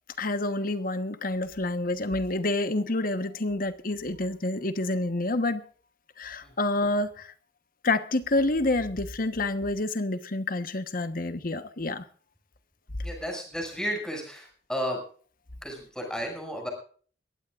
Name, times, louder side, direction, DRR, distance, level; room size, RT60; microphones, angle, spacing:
voice 1, 0.2-5.6 6.2-7.3 7.8-12.0, left 2 dB, 55° left, 1.2 m, -28 dB
voice 2, 13.0-15.0 15.6-16.7, equal, 5° left, 6.7 m, -33 dB
22.0 x 16.5 x 2.5 m
head